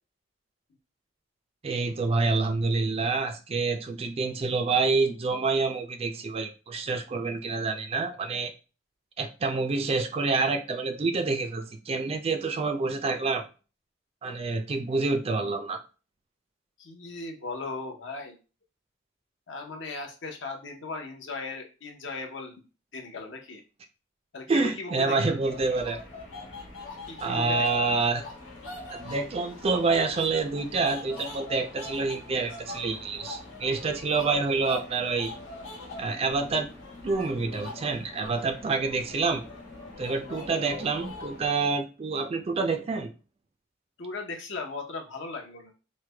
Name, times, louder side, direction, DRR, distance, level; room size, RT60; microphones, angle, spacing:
voice 1, 1.6-8.5 9.2-13.4 14.2-15.8 24.5-26.0 27.2-28.2 28.9-35.3 36.0-36.7 37.0-39.4 40.0-43.1, right 3 dB, 30° right, 6 dB, 0.3 m, -27 dB
voice 2, 16.8-18.4 19.5-22.6 22.9-23.6 24.3-25.4 27.1-27.9 40.2-40.4 44.0-45.7, left 3 dB, 65° left, 2 dB, 0.7 m, -38 dB
sound 1, 25.4-41.5, left 2 dB, 90° left, 1.2 m, -42 dB
3.1 x 2.1 x 3.3 m, 0.33 s
head